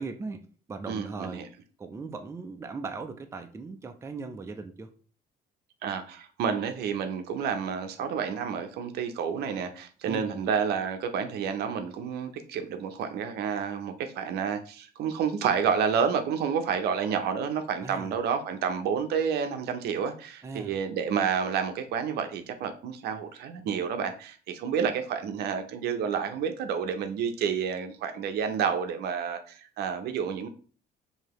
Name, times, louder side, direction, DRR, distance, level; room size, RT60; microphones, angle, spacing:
voice 1, 0.0-1.5 1.8-4.9 10.1-10.4 17.8-18.1 20.4-20.7, right 4 dB, 15° right, 0.4 m, -38 dB
voice 2, 0.9-1.5 5.8-30.5, right 7 dB, 70° right, 0.6 m, -30 dB
4.7 x 2.8 x 3.0 m
cardioid pair, 110°, 17 cm